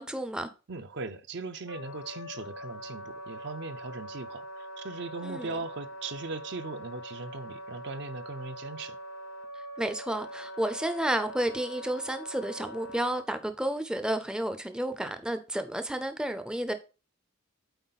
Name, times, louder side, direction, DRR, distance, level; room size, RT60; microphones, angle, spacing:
voice 1, 0.0-0.5 5.2-5.5 9.8-16.7, right 1 dB, 5° right, 0.5 m, -31 dB
voice 2, 0.7-9.0, right 3 dB, 60° right, 0.6 m, -39 dB
Wind instrument woodwind instrument, 1.7-13.3, equal, 90° left, 0.8 m, -43 dB
8.0 x 4.3 x 4.0 m
head